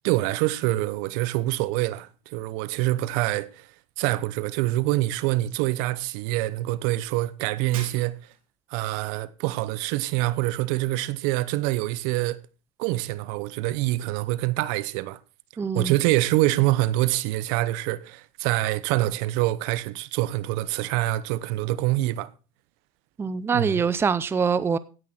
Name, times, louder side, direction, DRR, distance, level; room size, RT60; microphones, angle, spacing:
voice 1, 0.0-3.7 4.0-8.2 8.7-12.4 12.8-15.2 15.7-22.3 23.5-23.8, right 17 dB, 55° right, 0.8 m, -25 dB
Shatter, 7.7-8.5, right 7 dB, 80° right, 3.2 m, -41 dB
voice 2, 15.6-16.0 23.2-24.8, right 5 dB, 15° right, 0.6 m, -24 dB
16.5 x 6.1 x 4.4 m
hypercardioid pair, 110°, 18 cm